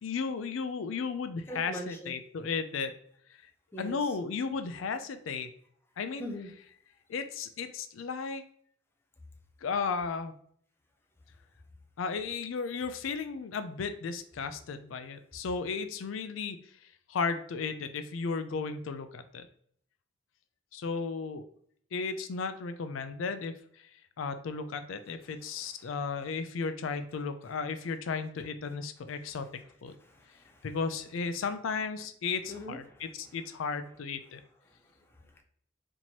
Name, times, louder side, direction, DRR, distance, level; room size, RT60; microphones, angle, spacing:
voice 1, 0.0-2.9 3.8-5.5 6.0-6.3 7.1-8.4 9.6-10.3 12.0-16.6 17.1-19.5 20.7-21.4 21.9-23.5 24.2-30.0 30.6-34.4, left 5 dB, 85° left, 10 dB, 0.4 m, -34 dB
voice 2, 1.5-2.1 3.7-4.2 6.2-6.5 14.4-14.5 25.2-26.2 27.8-27.9 29.2-31.0 31.3-31.5 32.3-33.7 34.3-34.4 35.4-35.5, equal, 10° left, 2 dB, 0.6 m, -45 dB
4.3 x 2.9 x 2.8 m, 0.63 s
head